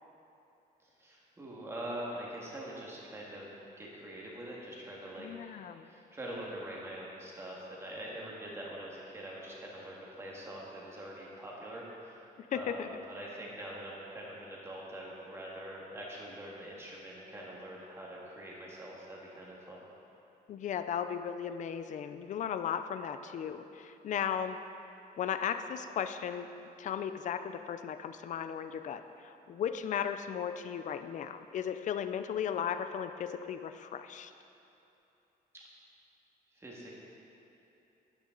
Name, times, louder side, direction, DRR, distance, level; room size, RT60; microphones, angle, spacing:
voice 1, 0.8-3.5 3.8-12.2 12.5-19.8 35.5-35.6 36.5-36.9, right 1 dB, 15° right, -4 dB, 1.8 m, -44 dB
voice 2, 5.2-5.9 12.4-12.9 20.5-24.6 25.2-26.5 26.8-34.3, left 8 dB, 50° left, 10 dB, 0.5 m, -36 dB
12.0 x 10.0 x 3.9 m, 2.9 s
cardioid pair, 175°, 16 cm